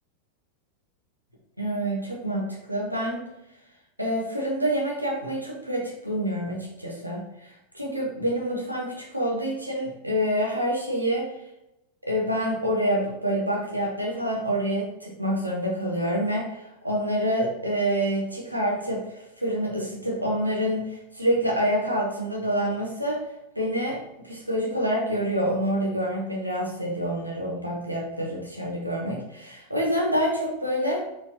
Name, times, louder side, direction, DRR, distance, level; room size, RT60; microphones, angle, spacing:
voice 1, 1.6-3.2 4.0-11.3 12.1-23.2 23.5-24.0 24.2-31.0, equal, 90° right, -2 dB, 1.1 m, -27 dB
4.3 x 3.7 x 2.9 m, 0.90 s
figure-of-eight pair, 90°, 0 cm